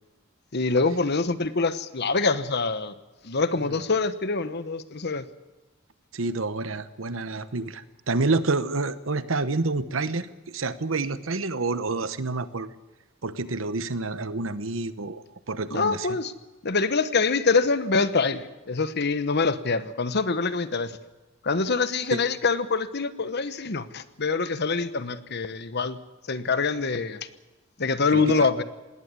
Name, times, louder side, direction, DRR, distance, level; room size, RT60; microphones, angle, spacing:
voice 1, 0.5-2.9 3.2-5.2 15.7-16.3 16.6-21.0 21.4-26.0 26.3-27.2 27.8-28.6, left 4 dB, 55° left, 13 dB, 1.1 m, -25 dB
voice 2, 6.1-12.7 13.2-16.2 22.1-22.2 28.1-28.3, right 3 dB, 75° right, 14 dB, 1.0 m, -28 dB
19.0 x 17.5 x 9.6 m, 1.1 s
head